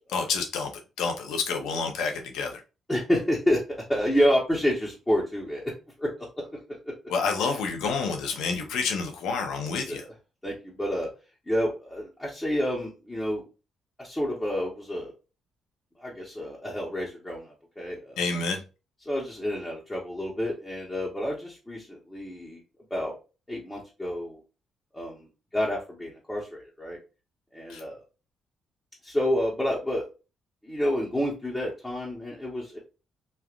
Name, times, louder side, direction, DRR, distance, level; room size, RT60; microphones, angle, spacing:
voice 1, 0.1-0.7 1.0-2.6 7.1-10.0 18.2-18.6 27.7-27.8, left 4 dB, 85° left, 4 dB, 0.7 m, -28 dB
voice 2, 2.9-5.6 6.0-6.5 6.8-6.9 7.4-7.5 9.9-10.1 10.4-11.1 11.5-13.4 14.0-15.1 16.0-18.2 19.0-22.6 22.9-23.1 23.5-24.4 24.9-25.3 25.5-27.0 27.5-28.0 29.0-30.0 30.6-32.8, equal, 10° left, -5 dB, 1.0 m, -29 dB
3.1 x 2.4 x 2.4 m, 0.30 s
cardioid pair, 90°, 0 cm